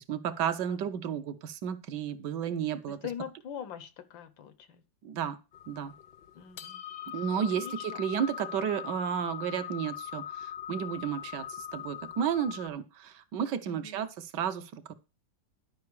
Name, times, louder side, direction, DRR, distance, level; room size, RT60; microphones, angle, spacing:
voice 1, 0.0-3.0 5.0-5.4 5.7-5.9 7.1-14.9, right 8 dB, 70° right, 1.4 m, -32 dB
voice 2, 2.9-4.8 6.3-6.8 7.3-8.0 13.7-14.0, left 8 dB, 90° left, 1.7 m, -43 dB
sound 1, 5.5-12.7, left 10 dB, 75° left, 1.1 m, -41 dB
11.0 x 5.2 x 4.6 m
omnidirectional pair, 2.0 m